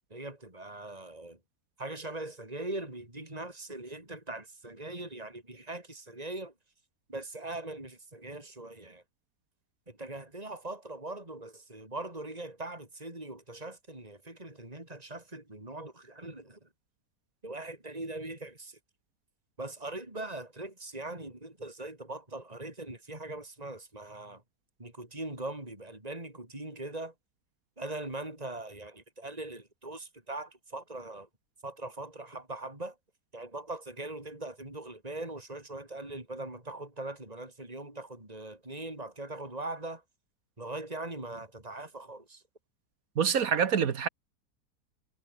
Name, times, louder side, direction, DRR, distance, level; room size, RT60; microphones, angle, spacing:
voice 1, 0.1-1.4 1.8-6.5 7.1-9.0 9.9-16.7 17.4-18.8 19.6-24.4 24.8-27.1 27.8-31.3 31.6-33.0 33.3-40.0 40.6-42.4, right 2 dB, 20° right, 5.3 m, -41 dB
voice 2, 43.1-44.1, right 7 dB, 55° right, 1.6 m, -26 dB
omnidirectional pair, 1.8 m